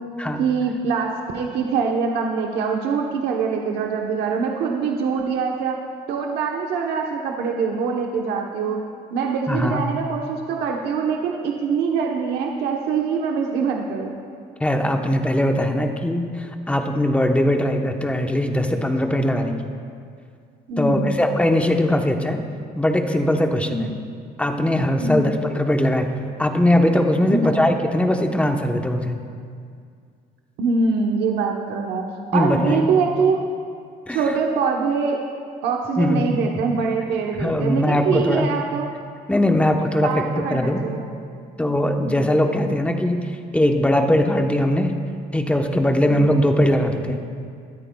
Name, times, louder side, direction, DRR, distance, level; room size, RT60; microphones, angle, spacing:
voice 1, 0.4-5.8 6.1-8.8 9.1-14.1 20.7-21.2 23.7-23.9 25.0-25.3 27.3-27.5 30.6-32.0 32.3-33.4 34.1-35.2 35.6-38.9 40.0-41.0 42.0-42.3, right 5 dB, 80° right, 1 dB, 1.0 m, -23 dB
voice 2, 9.5-9.9 14.6-19.5 20.8-22.4 22.8-23.9 24.4-29.2 32.3-32.8 34.1-34.2 36.0-36.4 37.4-38.5 39.3-40.8 41.6-44.9 45.3-47.2, left 1 dB, 5° left, 4 dB, 1.0 m, -20 dB
21.0 x 12.5 x 2.3 m, 2.2 s
cardioid pair, 110°, 17 cm